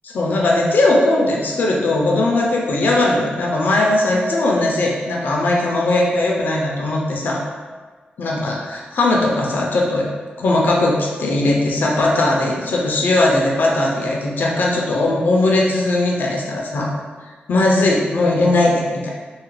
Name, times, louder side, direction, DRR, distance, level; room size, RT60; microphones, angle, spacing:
voice 1, 0.0-7.4 8.2-10.0 10.4-16.9 17.5-19.1, left 2 dB, 65° left, -2 dB, 0.4 m, -18 dB
2.8 x 2.4 x 3.1 m, 1.4 s
wide cardioid pair, 170°, 3 cm